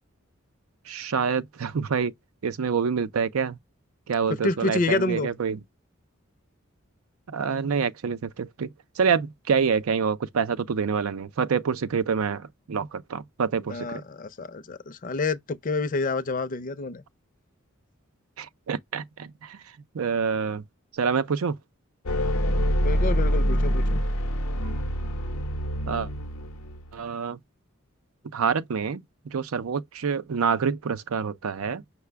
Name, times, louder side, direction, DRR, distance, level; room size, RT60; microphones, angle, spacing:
voice 1, 0.9-2.1 2.4-3.6 4.1-5.6 7.3-14.0 18.4-19.6 19.9-20.6 20.9-21.6 25.9-26.1 26.9-27.4 28.3-31.8, right 6 dB, 90° right, 0.5 m, -27 dB
voice 2, 4.4-5.3 13.7-17.0 22.8-24.0, left 3 dB, 40° left, 0.5 m, -28 dB
sound 1, 22.1-26.9, equal, 85° left, 0.7 m, -25 dB
5.7 x 2.1 x 3.4 m
head